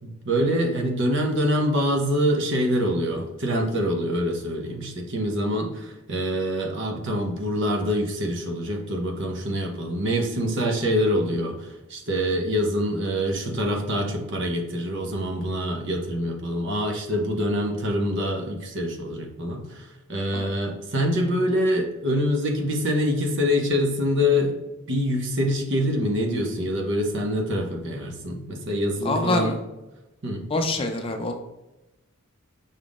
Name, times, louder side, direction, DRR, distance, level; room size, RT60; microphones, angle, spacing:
voice 1, 0.0-29.5 30.2-30.5, equal, 60° right, 2 dB, 0.8 m, -25 dB
voice 2, 29.0-29.6 30.5-31.3, left 2 dB, 25° left, 4 dB, 0.4 m, -25 dB
5.6 x 3.5 x 2.4 m, 1.0 s
head